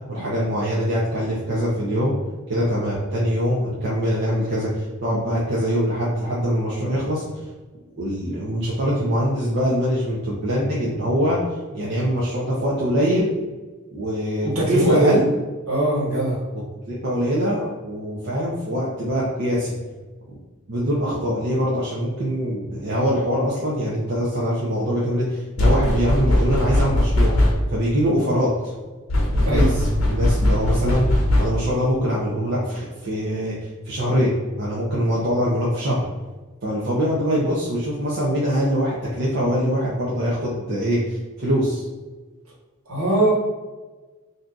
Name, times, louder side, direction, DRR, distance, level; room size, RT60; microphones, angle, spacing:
voice 1, 0.1-2.1 2.5-7.5 7.9-11.4 11.7-13.3 13.9-15.2 16.5-19.7 20.7-27.4 27.7-28.7 29.3-36.0 36.6-41.9, equal, 55° right, -6 dB, 0.6 m, -23 dB
voice 2, 14.4-15.2 15.7-16.4 29.4-29.7 42.9-43.3, right 1 dB, 75° right, -6 dB, 1.4 m, -20 dB
sound 1, 25.6-27.8 29.1-31.8, left 1 dB, 75° left, 0.7 m, -19 dB
2.6 x 2.3 x 3.7 m, 1.2 s
head